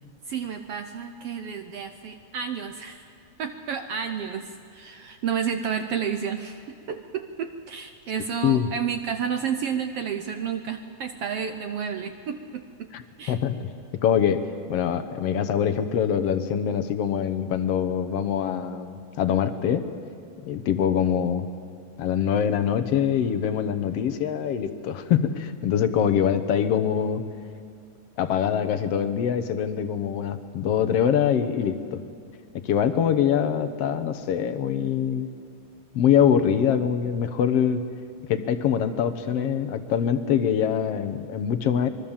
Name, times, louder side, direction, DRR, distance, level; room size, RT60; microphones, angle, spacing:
voice 1, 0.2-3.1 3.4-6.6 6.9-12.9 13.2-13.4, right 7 dB, 70° right, 7 dB, 1.5 m, -31 dB
voice 2, 13.3-13.7 14.0-19.9 20.4-21.5 22.0-27.2 28.2-32.0 32.6-35.3 36.0-37.8 38.3-41.9, left 8 dB, 65° left, 10 dB, 1.7 m, -24 dB
25.5 x 22.5 x 7.3 m, 2.3 s
omnidirectional pair, 3.6 m